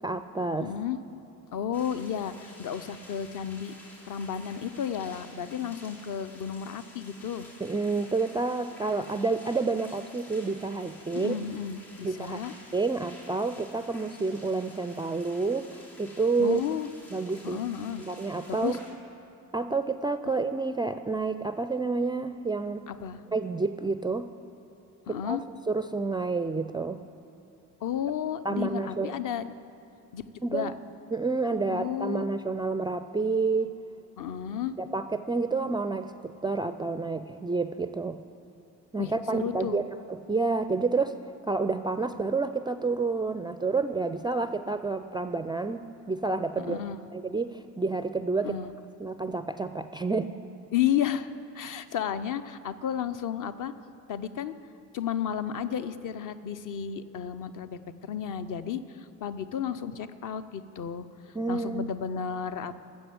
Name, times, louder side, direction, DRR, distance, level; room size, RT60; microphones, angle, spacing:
voice 1, 0.0-0.7 7.6-11.3 12.0-12.4 12.7-16.6 17.1-17.6 18.0-18.8 19.5-22.9 23.3-24.3 25.1-25.4 25.7-27.0 28.4-29.1 30.4-30.7 31.1-33.8 34.8-38.2 38.9-39.8 40.1-46.8 47.1-48.6 49.0-50.3 61.3-62.0, right 3 dB, 10° right, 10 dB, 0.3 m, -29 dB
voice 2, 0.5-1.0 1.5-3.7 4.1-7.5 11.1-12.5 16.4-16.9 17.4-18.0 18.5-18.8 22.9-23.2 25.1-25.4 27.8-29.5 30.1-30.7 31.7-32.3 34.2-34.8 39.0-39.8 46.7-47.0 48.4-48.7 50.7-53.7 54.1-54.5 54.9-62.8, left 9 dB, 45° left, 12 dB, 0.7 m, -32 dB
sound 1, 1.7-18.9, left 1 dB, 75° left, 3.1 m, -51 dB
13.5 x 7.8 x 8.0 m, 2.7 s
figure-of-eight pair, 40°, 44 cm